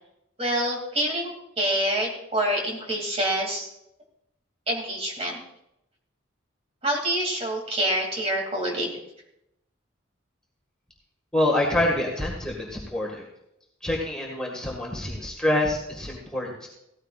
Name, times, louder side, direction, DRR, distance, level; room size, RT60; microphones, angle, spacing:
voice 1, 0.4-3.7 4.7-5.4 6.8-8.9, right 1 dB, 30° right, 0 dB, 2.6 m, -26 dB
voice 2, 11.3-13.2 13.8-16.7, left 1 dB, 5° left, -3 dB, 1.8 m, -26 dB
16.5 x 14.0 x 2.5 m, 0.82 s
head